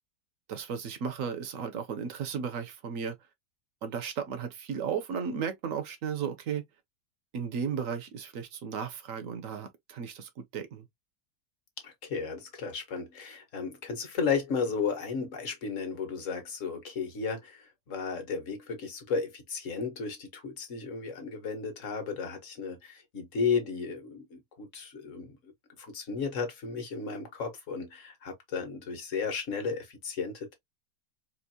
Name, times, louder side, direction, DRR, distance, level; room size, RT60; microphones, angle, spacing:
voice 1, 0.5-3.2 3.8-6.6 7.3-10.9, right 7 dB, 60° right, 1.0 m, -35 dB
voice 2, 11.8-25.5 25.8-30.5, left 5 dB, 50° left, 1.4 m, -34 dB
4.4 x 2.6 x 2.7 m
omnidirectional pair, 1.7 m